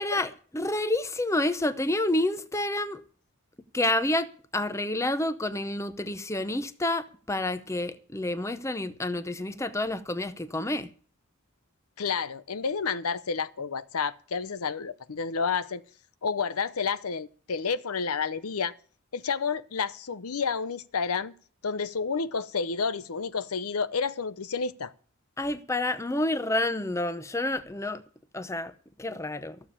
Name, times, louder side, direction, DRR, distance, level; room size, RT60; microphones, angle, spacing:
voice 1, 0.0-3.0 3.7-10.9 25.4-28.0 28.3-28.7 29.0-29.6, left 1 dB, 15° left, 0.7 m, -29 dB
voice 2, 12.0-15.8 16.2-18.7 19.1-21.3 21.6-24.9, left 5 dB, 85° left, 0.7 m, -30 dB
14.5 x 7.0 x 8.6 m
head